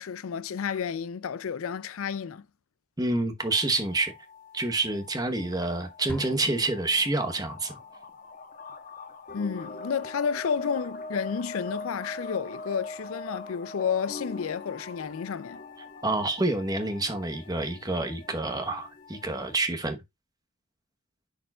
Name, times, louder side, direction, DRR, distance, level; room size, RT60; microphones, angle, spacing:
voice 1, 0.0-2.4 9.3-15.6, left 6 dB, 80° left, 0.4 m, -31 dB
voice 2, 3.0-4.1 4.5-7.8 16.0-20.0, right 2 dB, 20° right, 1.0 m, -28 dB
sound 1, 3.4-19.5, left 2 dB, 40° left, 1.1 m, -43 dB
sound 2, 6.1-7.8, equal, 10° left, 0.7 m, -42 dB
10.0 x 4.6 x 2.3 m
head